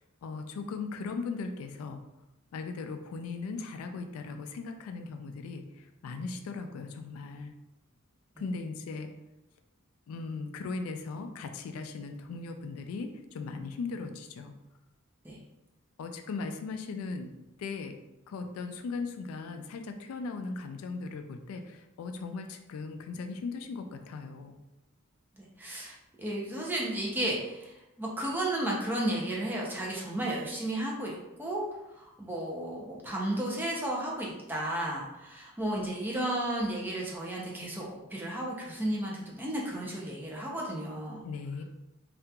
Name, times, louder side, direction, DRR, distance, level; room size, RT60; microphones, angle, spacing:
voice 1, 0.0-2.0 2.5-7.6 8.4-9.1 10.1-14.6 16.0-17.3 17.6-18.0 18.3-24.6 41.2-41.6, left 4 dB, 80° left, 7 dB, 0.3 m, -38 dB
voice 2, 25.4-31.6 32.0-41.2, right 1 dB, 10° right, -3 dB, 0.5 m, -33 dB
2.8 x 2.4 x 2.2 m, 0.94 s
head